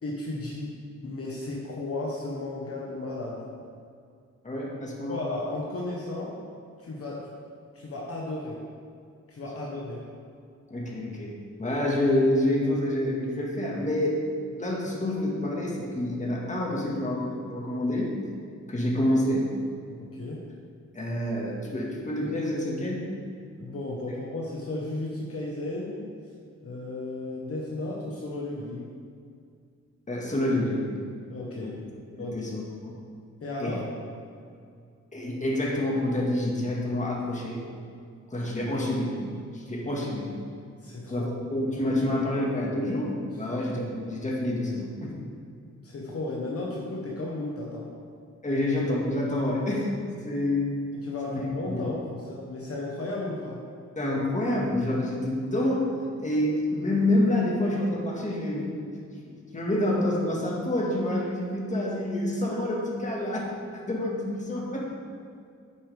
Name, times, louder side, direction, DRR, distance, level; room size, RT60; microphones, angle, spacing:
voice 1, 0.0-0.8 1.0-3.4 5.1-6.4 6.8-7.3 7.7-8.6 9.3-10.0 20.0-20.5 23.6-26.0 26.6-28.9 31.3-31.8 32.2-32.5 33.4-33.9 40.8-41.3 45.8-47.9 50.9-53.6, left 2 dB, 50° left, -3 dB, 1.3 m, -34 dB
voice 2, 4.4-5.1 10.7-14.2 14.5-18.1 18.7-19.5 20.9-23.1 30.1-30.9 31.6-31.7 32.1-32.9 33.6-33.8 35.1-37.6 38.3-39.2 39.5-40.3 41.1-45.2 48.4-49.9 50.2-50.7 51.3-51.4 51.7-51.9 54.0-55.9 56.2-58.9 59.3-63.4 63.7-64.9, left 1 dB, 25° left, -3 dB, 1.9 m, -27 dB
10.0 x 9.5 x 3.6 m, 2.3 s
wide cardioid pair, 125°, 29 cm